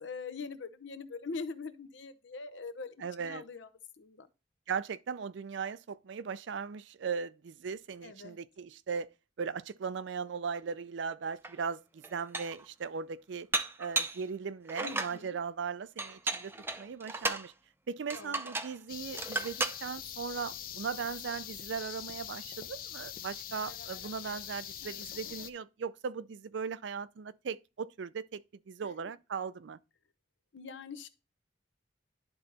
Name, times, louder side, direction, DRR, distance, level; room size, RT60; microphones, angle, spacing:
voice 1, 0.0-3.7 4.0-4.3 8.0-8.4 14.8-15.4 18.1-18.5 24.8-25.0 30.5-31.1, left 4 dB, 75° left, 0.7 m, -43 dB
voice 2, 3.0-3.4 4.7-9.1 9.4-13.5 13.8-17.5 17.9-28.4 28.7-29.8, right 6 dB, 75° right, 0.4 m, -38 dB
Dishes pots and pans, 11.4-11.5 12.0-12.6 13.5-14.2 14.7-15.2 16.0-17.5 18.1-18.8 19.1-19.8, right 3 dB, 10° right, 0.4 m, -34 dB
sound 1, 18.9-25.5, left 10 dB, 45° left, 0.4 m, -43 dB
11.0 x 3.9 x 4.0 m
head